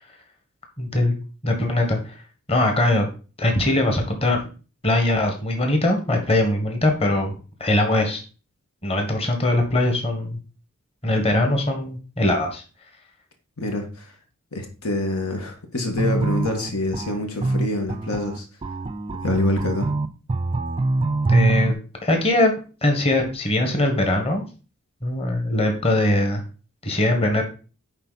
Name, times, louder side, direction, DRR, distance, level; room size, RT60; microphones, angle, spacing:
voice 1, 0.8-1.1 1.4-2.2 2.5-3.1 3.4-4.4 4.8-7.3 7.6-8.2 8.8-10.4 11.0-12.6 21.3-21.7 22.0-22.5 22.8-24.4 25.0-26.4 26.8-27.4, left 1 dB, 30° left, 4 dB, 1.3 m, -21 dB
voice 2, 14.5-18.4 19.2-19.9, left 1 dB, 90° left, 4 dB, 1.6 m, -25 dB
sound 1, 16.0-21.7, right 3 dB, 25° right, 0.4 m, -24 dB
9.8 x 3.9 x 4.0 m, 0.35 s
head